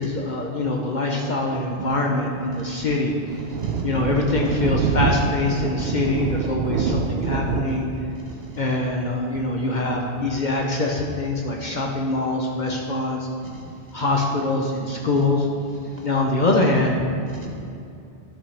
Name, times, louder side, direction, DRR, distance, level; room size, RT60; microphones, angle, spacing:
voice 1, 0.0-3.1 3.8-7.9 8.6-13.3 13.9-15.5 16.0-17.1, left 2 dB, 50° left, 0 dB, 0.9 m, -23 dB
Thunder, 2.2-11.4, right 5 dB, 70° right, 0.8 m, -27 dB
voice 2, 3.5-3.8 8.1-8.6 12.6-12.7 13.4-13.6 15.8-16.1 17.2-17.5, right 2 dB, 40° right, -3 dB, 1.4 m, -42 dB
11.5 x 7.5 x 3.4 m, 2.5 s
omnidirectional pair, 1.1 m